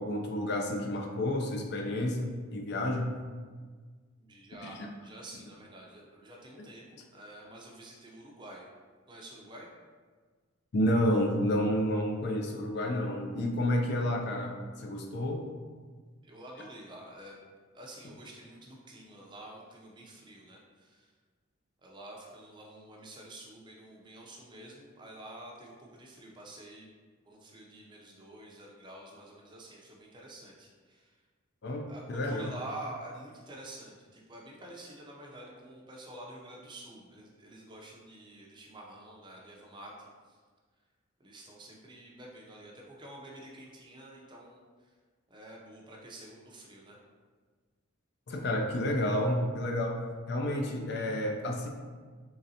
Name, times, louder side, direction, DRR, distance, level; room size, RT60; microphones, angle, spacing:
voice 1, 0.0-3.1 4.6-4.9 10.7-15.4 31.6-32.5 48.3-50.0 50.3-51.7, left 1 dB, 50° left, 2 dB, 0.4 m, -30 dB
voice 2, 4.2-8.6 9.1-9.7 16.2-17.4 17.7-21.1 21.8-26.9 27.2-31.1 31.9-40.4 41.2-44.6 45.3-47.0, right 1 dB, 20° right, -2 dB, 0.5 m, -48 dB
3.9 x 3.2 x 2.7 m, 1.5 s
head